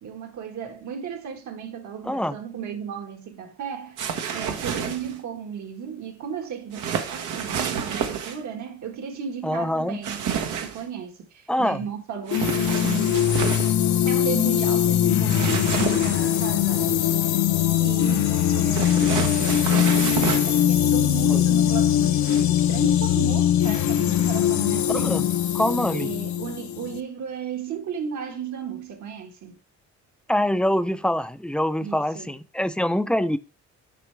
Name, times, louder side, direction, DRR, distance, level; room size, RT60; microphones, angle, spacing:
voice 1, 0.0-4.0 4.3-13.3 14.0-17.4 17.8-25.3 25.9-29.6 31.8-32.3, right 7 dB, 70° right, 1.6 m, -34 dB
voice 2, 2.1-2.4 9.4-10.0 11.5-11.8 21.3-21.4 24.9-25.3 25.5-26.1 30.3-33.4, left 1 dB, 5° left, 0.4 m, -24 dB
sound 1, 4.0-5.2 6.7-8.4 10.0-10.8 12.3-13.7 15.3-16.4 18.7-20.6 22.2-22.4, right 7 dB, 85° right, 1.1 m, -29 dB
sound 2, 12.3-27.0, left 11 dB, 70° left, 0.7 m, -21 dB
7.5 x 5.4 x 3.3 m
cardioid pair, 90°, 30 cm